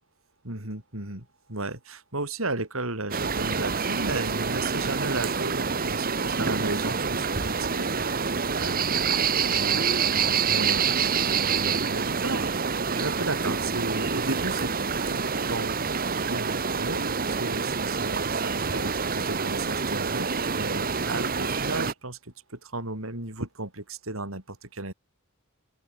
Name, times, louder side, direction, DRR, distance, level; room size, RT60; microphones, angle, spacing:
voice 1, 0.4-9.1 9.5-9.9 10.2-11.1 11.4-14.7 15.0-24.9, right 2 dB, 75° right, 5.4 m, -35 dB
sound 1, 3.1-21.9, right 5 dB, 45° right, 1.6 m, -27 dB
open air
head